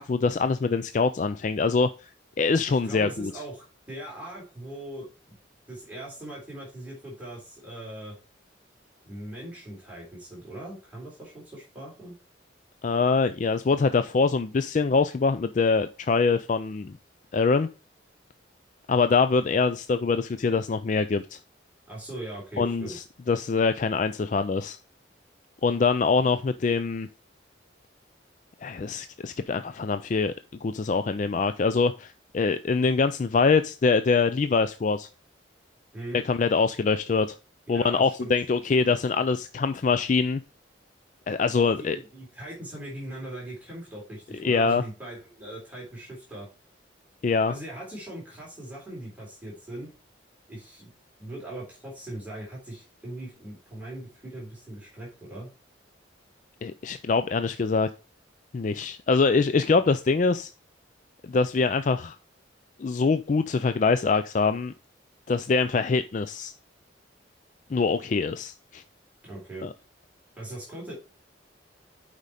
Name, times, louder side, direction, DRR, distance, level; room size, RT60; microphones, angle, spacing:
voice 1, 0.0-2.1 2.4-3.3 12.8-17.0 17.3-17.7 18.9-21.4 22.6-24.8 25.6-27.1 28.6-30.3 30.6-35.1 36.2-37.3 37.7-40.4 41.3-42.0 44.4-44.8 47.2-47.5 56.6-57.9 58.5-60.5 61.3-62.2 62.8-64.7 65.3-66.5 67.7-68.8 69.6-69.7, left 4 dB, 40° left, 10 dB, 0.3 m, -24 dB
voice 2, 2.7-5.4 5.7-8.2 9.1-12.1 21.9-23.0 35.9-36.2 37.7-38.9 41.6-46.5 47.5-49.9 50.5-50.9 51.2-55.5 69.2-69.7 70.4-70.9, right 1 dB, 10° right, -5 dB, 3.4 m, -40 dB
8.2 x 5.1 x 4.2 m, 0.32 s
head